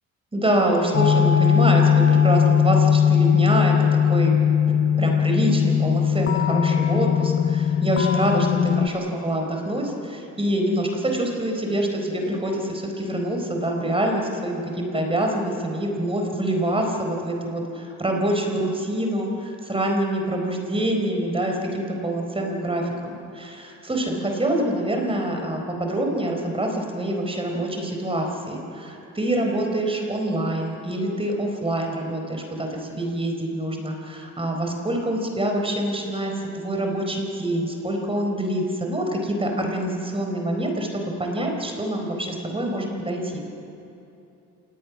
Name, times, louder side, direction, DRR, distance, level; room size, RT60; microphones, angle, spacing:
voice 1, 0.3-4.3 5.0-43.4, right 1 dB, 20° right, 2 dB, 4.4 m, -26 dB
sound 1, 0.9-8.9, left 8 dB, 45° left, 0.9 m, -19 dB
26.5 x 19.0 x 6.2 m, 2.8 s
cardioid pair, 90°, 30 cm